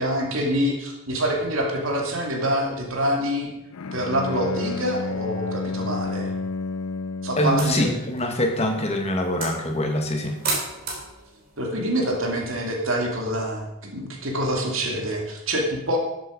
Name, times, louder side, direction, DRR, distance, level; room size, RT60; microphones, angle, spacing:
voice 1, 0.0-3.5 3.9-6.3 7.2-8.0 11.6-13.7 13.9-16.0, equal, 70° right, 1 dB, 2.6 m, -26 dB
Bowed string instrument, 3.7-7.8, left 3 dB, 85° left, 0.5 m, -30 dB
voice 2, 7.4-10.4, left 1 dB, 30° left, 3 dB, 1.8 m, -24 dB
sound 1, 7.5-13.0, right 3 dB, 45° right, 3.6 m, -35 dB
13.5 x 7.9 x 5.1 m, 0.89 s
head